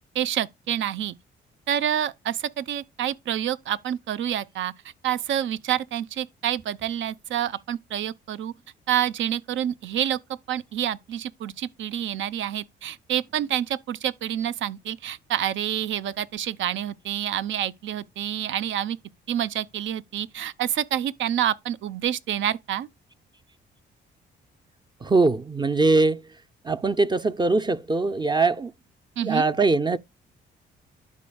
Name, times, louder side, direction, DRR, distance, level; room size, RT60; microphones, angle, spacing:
voice 1, 0.1-1.1 1.7-4.7 5.0-8.5 8.9-10.2 10.5-19.0 19.3-22.9 29.2-29.5, right 10 dB, 70° right, 0.7 m, -28 dB
voice 2, 25.0-26.2 26.6-28.7 29.2-30.0, right 3 dB, 20° right, 0.5 m, -22 dB
12.0 x 5.3 x 2.3 m
cardioid pair, 90°, 20 cm